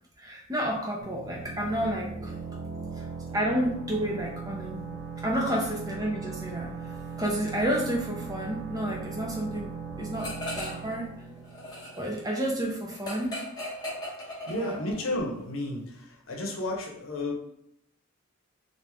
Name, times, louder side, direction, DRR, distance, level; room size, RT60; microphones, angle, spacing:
voice 1, 0.2-2.3 3.3-4.8 5.2-6.7 7.2-9.7 10.0-10.3 10.5-11.1 12.0-13.3 14.5-14.8, right 1 dB, 20° right, -1 dB, 0.6 m, -30 dB
sound 1, 1.0-12.5, right 5 dB, 60° right, 0.5 m, -39 dB
sound 2, 10.2-10.9 11.2-15.0, left 1 dB, 20° left, 1.0 m, -38 dB
voice 2, 14.5-17.4, left 1 dB, 75° left, 1 dB, 0.8 m, -32 dB
3.0 x 2.6 x 3.4 m, 0.75 s
head